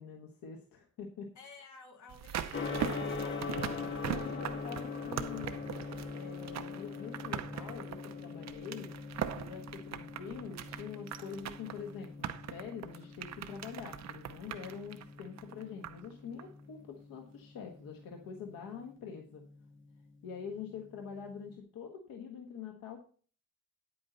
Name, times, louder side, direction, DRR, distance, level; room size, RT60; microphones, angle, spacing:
voice 1, 0.0-1.3 3.4-5.5 6.1-8.9 9.2-19.4 20.2-23.0, left 6 dB, 80° left, 3 dB, 1.5 m, -45 dB
voice 2, 1.3-3.5, left 3 dB, 55° left, 2 dB, 3.0 m, -53 dB
sound 1, 2.1-16.1 16.4-16.5, right 9 dB, 50° right, 0.8 m, -41 dB
Gong, 2.5-21.5, left 4 dB, 35° left, 1.7 m, -43 dB
9.8 x 8.6 x 4.0 m, 0.42 s
cardioid pair, 145°, 34 cm